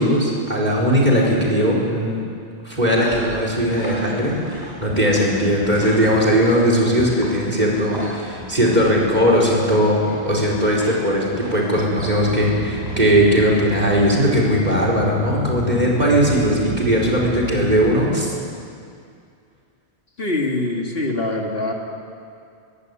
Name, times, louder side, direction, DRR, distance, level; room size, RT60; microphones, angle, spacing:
voice 1, 0.0-2.2 2.6-18.3, equal, 40° right, -2 dB, 4.7 m, -19 dB
sound 1, 2.7-14.4, equal, 20° right, 7.7 m, -36 dB
sound 2, 12.2-17.9, left 1 dB, 70° right, 6.2 m, -28 dB
voice 2, 20.2-21.7, left 2 dB, 60° left, 1 dB, 2.5 m, -23 dB
24.5 x 15.5 x 9.7 m, 2.4 s
omnidirectional pair, 1.1 m